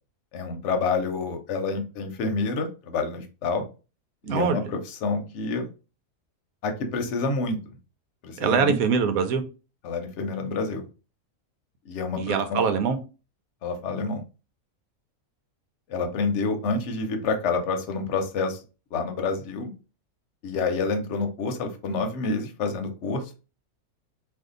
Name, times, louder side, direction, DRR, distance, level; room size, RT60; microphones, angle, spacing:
voice 1, 0.3-3.7 4.3-5.7 6.6-7.6 8.2-8.8 9.8-10.8 11.9-12.6 13.6-14.2 15.9-18.6 18.9-19.7 20.4-23.4, left 4 dB, 60° left, 0.9 m, -28 dB
voice 2, 4.2-4.6 8.4-9.4 12.2-13.0, right 6 dB, 90° right, 1.0 m, -23 dB
2.6 x 2.3 x 3.7 m
omnidirectional pair, 1.5 m